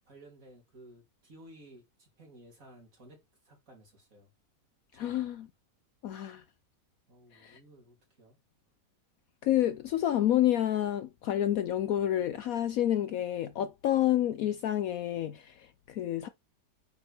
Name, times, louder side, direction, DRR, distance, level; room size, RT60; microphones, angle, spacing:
voice 1, 0.1-3.2 3.4-4.3 4.9-5.2 7.1-8.4, right 1 dB, 50° right, 3.3 m, -55 dB
voice 2, 5.0-5.5 6.0-6.4 7.3-7.6 9.4-16.3, left 12 dB, 70° left, 0.9 m, -29 dB
8.7 x 4.7 x 3.3 m
omnidirectional pair, 1.8 m